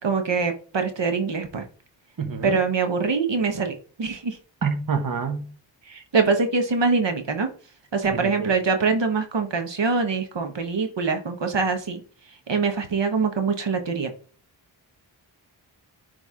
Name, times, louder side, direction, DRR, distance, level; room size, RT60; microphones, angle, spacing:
voice 1, 0.0-1.6 2.4-4.4 5.9-7.5 7.9-12.0 12.5-14.1, right 4 dB, 65° right, 1.2 m, -24 dB
voice 2, 2.2-2.6 4.6-5.5 8.1-8.5, right 5 dB, 45° right, 1.1 m, -27 dB
9.8 x 3.4 x 3.6 m
cardioid pair, 45°, 46 cm